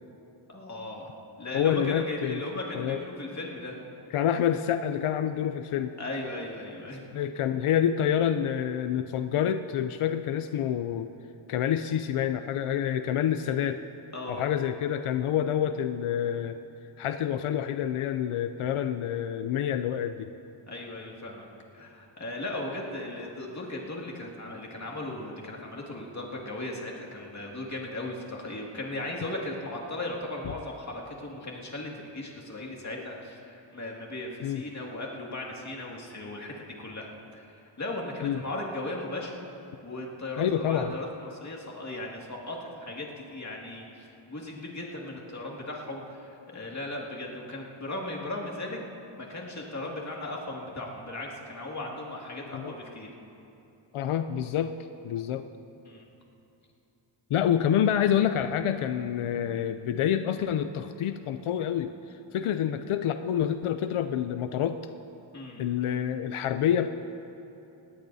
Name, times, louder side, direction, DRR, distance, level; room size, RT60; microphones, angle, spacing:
voice 1, 0.5-3.8 6.0-7.2 14.1-14.5 20.7-21.5 21.7-37.1 37.3-39.4 39.8-48.8 49.2-53.1 55.8-56.1 65.3-65.6, left 2 dB, 35° left, -2 dB, 2.2 m, -37 dB
voice 2, 1.5-2.4 2.7-3.0 4.1-5.9 7.1-11.1 11.5-13.8 14.3-16.6 17.0-20.3 30.5-30.6 34.4-34.6 38.2-38.4 40.4-40.9 52.5-52.7 53.9-54.7 55.0-55.4 57.3-64.8 65.6-66.9, left 9 dB, 90° left, 9 dB, 0.6 m, -27 dB
19.5 x 17.5 x 2.7 m, 2.8 s
wide cardioid pair, 105°, 48 cm